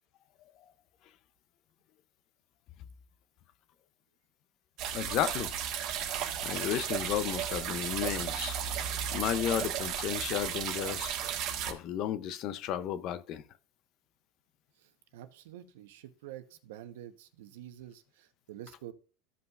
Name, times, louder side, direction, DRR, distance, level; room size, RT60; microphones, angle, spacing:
sound 1, 4.8-11.7, right 9 dB, 50° right, 1.3 m, -34 dB
voice 1, 4.9-5.5 6.4-8.6 9.1-11.1 11.6-13.4, left 10 dB, 45° left, 0.6 m, -33 dB
voice 2, 14.8-18.9, right 12 dB, 80° right, 1.0 m, -48 dB
14.5 x 5.5 x 2.4 m
supercardioid pair, 140°, 0 cm